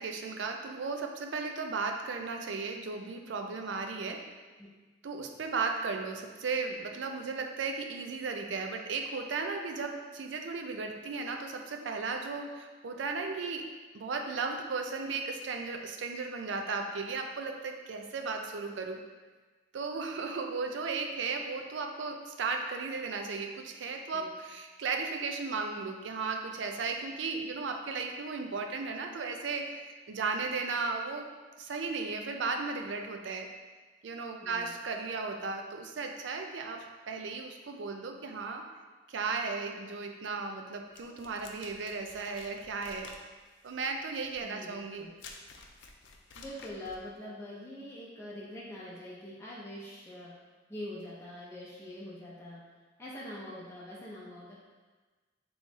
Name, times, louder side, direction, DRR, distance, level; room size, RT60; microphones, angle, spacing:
voice 1, 0.0-4.2 5.0-13.7 13.9-19.0 19.7-31.3 31.6-33.5 34.0-38.6 39.1-43.1 43.6-45.0, right 4 dB, 75° right, 4 dB, 0.4 m, -35 dB
sound 1, 40.9-47.1, left 4 dB, 80° left, 0.5 m, -52 dB
voice 2, 44.4-45.1 46.3-50.3 50.7-52.6 53.0-54.6, left 1 dB, 15° left, -7 dB, 0.6 m, -44 dB
3.7 x 3.0 x 4.0 m, 1.3 s
head